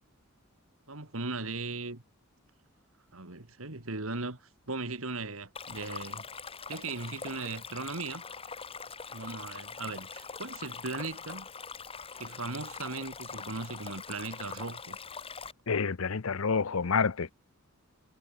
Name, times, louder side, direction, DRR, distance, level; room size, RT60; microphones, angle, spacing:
voice 1, 0.9-2.0 3.1-6.2 6.7-8.2 9.1-11.5 12.2-15.0, right 3 dB, 70° right, 2.7 m, -38 dB
Stream, 5.5-15.5, left 5 dB, 25° left, 1.7 m, -43 dB
voice 2, 15.7-17.3, left 5 dB, 75° left, 0.8 m, -28 dB
head